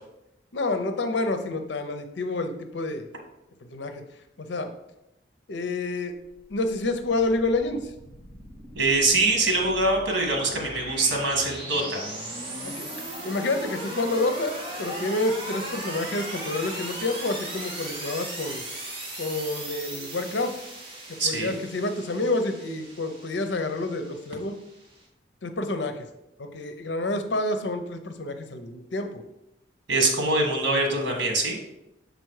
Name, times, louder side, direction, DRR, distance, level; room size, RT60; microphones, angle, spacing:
voice 1, 0.5-3.1 3.7-4.0 4.4-4.7 5.5-6.2 6.5-7.8 12.6-12.9 13.2-18.6 19.2-20.6 21.1-24.6 25.4-26.0 26.4-29.2, left 2 dB, 75° left, 7 dB, 0.6 m, -28 dB
sound 1, 6.3-25.0, right 1 dB, 30° right, 1.9 m, -38 dB
voice 2, 8.7-12.0 21.2-21.5 29.9-31.6, right 2 dB, 85° right, 2 dB, 1.5 m, -24 dB
6.7 x 4.0 x 4.7 m, 0.90 s
head